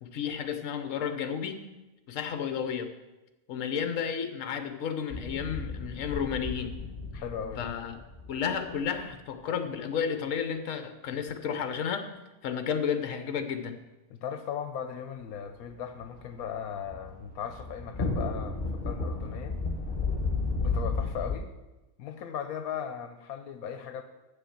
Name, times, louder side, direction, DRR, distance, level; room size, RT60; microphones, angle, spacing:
voice 1, 0.0-1.6 2.1-2.9 3.5-6.8 7.1-7.2 7.6-8.0 8.3-12.1 12.4-13.8, left 7 dB, 65° left, 8 dB, 1.2 m, -32 dB
sound 1, 5.1-9.0 15.9-21.3, left 3 dB, 35° left, 1.5 m, -33 dB
voice 2, 7.1-7.7 14.1-19.6 20.6-21.5 22.0-24.0, left 8 dB, 85° left, 7 dB, 1.1 m, -37 dB
7.7 x 6.8 x 7.1 m, 1.1 s
omnidirectional pair, 1.5 m